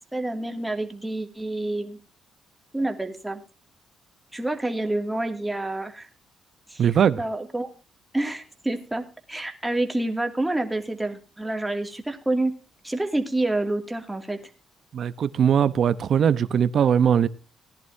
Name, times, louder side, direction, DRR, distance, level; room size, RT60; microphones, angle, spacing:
voice 1, 0.1-2.0 2.7-3.4 4.3-6.1 6.7-6.8 7.2-7.7 8.1-12.5 12.8-14.4, right 2 dB, 10° right, 2.5 m, -28 dB
voice 2, 6.8-7.2 14.9-17.3, right 8 dB, 60° right, 0.9 m, -20 dB
18.5 x 10.5 x 2.8 m
cardioid pair, 90°, 0 cm